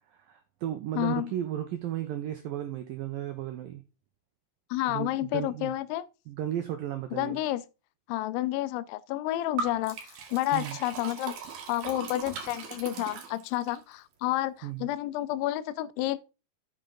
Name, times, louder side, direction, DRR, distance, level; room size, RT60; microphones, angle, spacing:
voice 1, 0.1-3.8 4.9-5.7 6.3-7.4 10.5-10.8 14.6-14.9, right 11 dB, 90° right, 2.0 m, -34 dB
voice 2, 1.0-1.3 4.7-6.1 7.1-7.6 8.1-16.2, left 15 dB, 85° left, 2.9 m, -30 dB
Liquid, 9.6-13.8, right 5 dB, 60° right, 3.5 m, -39 dB
8.9 x 7.2 x 3.8 m
omnidirectional pair, 5.4 m